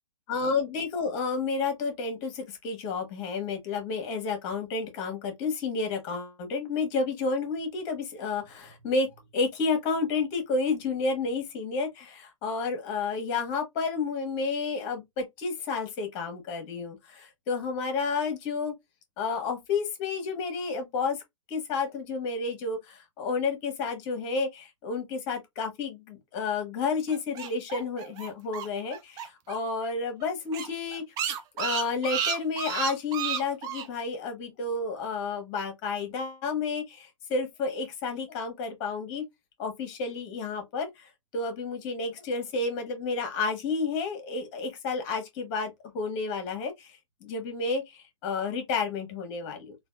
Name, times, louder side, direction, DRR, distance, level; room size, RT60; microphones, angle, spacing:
voice 1, 0.3-9.1 9.3-18.7 19.2-21.2 21.5-31.0 31.6-39.2 39.6-49.8, left 4 dB, 35° left, 1.4 m, -31 dB
sound 1, 27.1-29.6 29.8-29.9 30.2-30.3 30.5-33.9, right 9 dB, 20° right, 0.4 m, -32 dB
3.3 x 2.5 x 2.2 m
hypercardioid pair, 130°, 17 cm